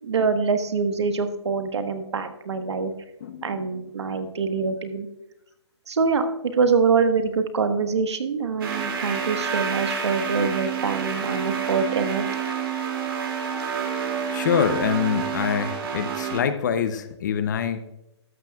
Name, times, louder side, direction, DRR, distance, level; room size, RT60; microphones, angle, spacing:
voice 1, 0.0-2.9 3.4-5.1 5.9-6.3 6.5-12.3, right 5 dB, 70° right, 8 dB, 1.4 m, -24 dB
voice 2, 3.2-3.6 14.3-17.8, left 7 dB, 40° left, 11 dB, 0.8 m, -25 dB
sound 1, 8.6-16.4, right 7 dB, 50° right, 2.5 m, -28 dB
13.5 x 12.5 x 2.4 m, 0.88 s
hypercardioid pair, 160°, 15 cm